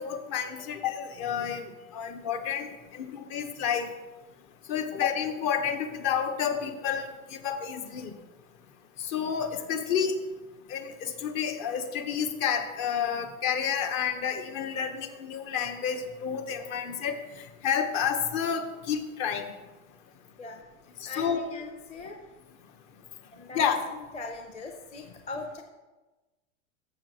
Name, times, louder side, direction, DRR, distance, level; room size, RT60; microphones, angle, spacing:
voice 1, 0.0-1.6 1.9-3.9 4.7-8.1 9.0-10.1 10.7-17.1 17.6-19.5 21.0-21.4 23.5-23.8, left 8 dB, 45° left, 6 dB, 1.3 m, -30 dB
voice 2, 21.0-22.2 23.3-25.6, left 3 dB, 15° left, 3 dB, 0.7 m, -40 dB
14.5 x 6.6 x 3.1 m, 1.2 s
supercardioid pair, 130°, 39 cm